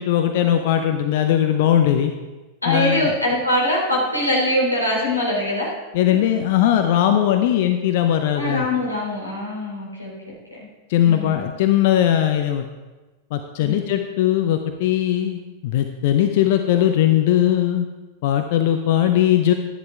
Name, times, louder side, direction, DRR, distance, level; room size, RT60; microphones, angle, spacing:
voice 1, 0.0-2.1 2.7-3.1 5.9-8.7 10.9-12.6 13.3-17.9 18.2-19.5, left 11 dB, 50° left, 6 dB, 0.8 m, -19 dB
voice 2, 2.6-5.7 8.3-10.3 10.6-10.7 11.0-11.4 13.6-13.9, left 1 dB, 85° left, -4 dB, 3.8 m, -23 dB
12.0 x 11.0 x 3.5 m, 1.2 s
figure-of-eight pair, 90°, 0 cm